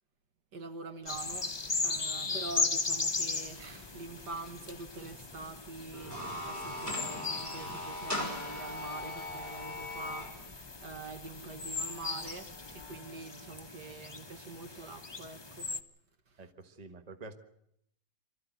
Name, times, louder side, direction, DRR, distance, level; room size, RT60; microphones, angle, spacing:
voice 1, 0.5-1.5 1.8-15.7, right 3 dB, 80° right, 2.1 m, -45 dB
sound 1, 1.1-15.8, left 3 dB, 20° left, 0.8 m, -38 dB
sound 2, 5.9-10.3, left 1 dB, 10° right, 5.5 m, -39 dB
voice 2, 16.4-17.3, right 3 dB, 25° right, 1.4 m, -48 dB
24.5 x 14.0 x 9.2 m
omnidirectional pair, 1.8 m